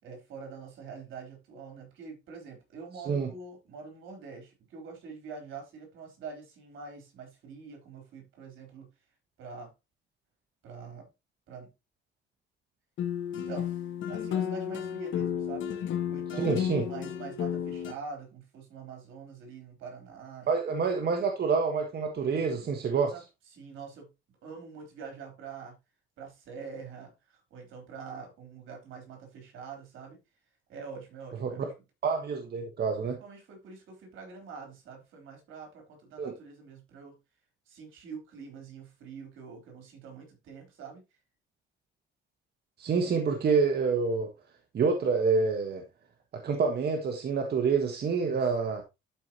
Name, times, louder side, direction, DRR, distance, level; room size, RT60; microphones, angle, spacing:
voice 1, 0.0-8.9 9.4-9.7 10.6-11.1 11.5-11.7 13.3-13.7 14.1-15.7 16.1-20.5 22.2-23.2 23.5-24.1 24.4-25.8 26.2-30.2 30.7-31.7 33.0-37.2 37.7-41.0 48.2-48.4, right 5 dB, 85° right, 3.8 m, -45 dB
sound 1, 13.0-17.9, left 9 dB, 75° left, 1.4 m, -32 dB
voice 2, 16.4-16.8 20.5-23.1 31.4-31.5 32.0-33.2 36.2-36.3 42.8-44.3 44.7-45.8 46.3-48.8, right 5 dB, 55° right, 1.5 m, -27 dB
12.0 x 4.9 x 3.0 m
cardioid pair, 90°, 20 cm